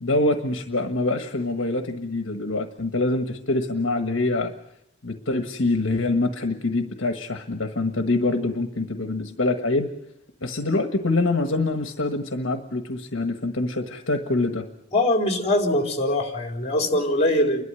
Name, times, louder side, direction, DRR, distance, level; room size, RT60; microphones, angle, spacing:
voice 1, 0.0-4.5 5.0-9.9 10.4-14.7, left 2 dB, 70° left, 6 dB, 1.5 m, -25 dB
voice 2, 14.9-17.6, left 1 dB, 35° left, 3 dB, 3.8 m, -22 dB
29.5 x 12.5 x 9.7 m, 0.79 s
head